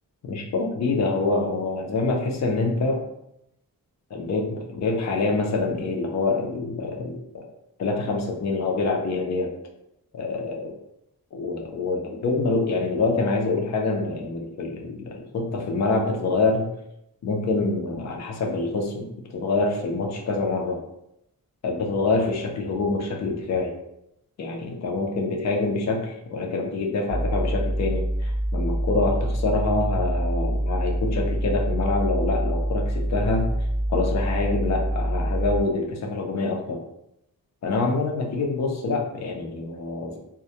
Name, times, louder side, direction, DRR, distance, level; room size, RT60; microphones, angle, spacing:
voice 1, 0.2-3.0 4.1-7.5 7.8-9.5 10.1-10.7 11.3-16.7 17.2-20.8 21.6-23.7 24.4-33.5 33.9-36.8 37.6-40.2, left 3 dB, 50° left, 1 dB, 0.4 m, -26 dB
sound 1, 27.1-35.6, right 1 dB, 20° left, 0.8 m, -25 dB
2.2 x 2.0 x 2.7 m, 0.81 s
wide cardioid pair, 160°, 36 cm